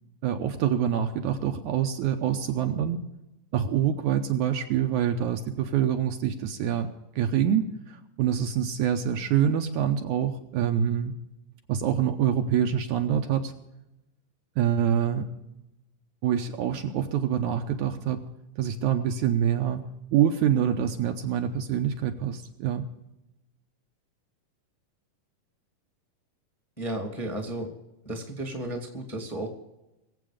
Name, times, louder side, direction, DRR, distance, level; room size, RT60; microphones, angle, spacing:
voice 1, 0.2-3.0 3.5-6.9 7.2-11.1 11.7-13.5 14.6-15.3 16.2-18.2 18.6-19.8 20.1-22.9, right 9 dB, 70° right, 5 dB, 2.0 m, -26 dB
voice 2, 26.8-27.7 28.0-29.5, right 1 dB, 15° left, 3 dB, 1.4 m, -33 dB
22.5 x 8.1 x 5.0 m, 0.93 s
omnidirectional pair, 3.9 m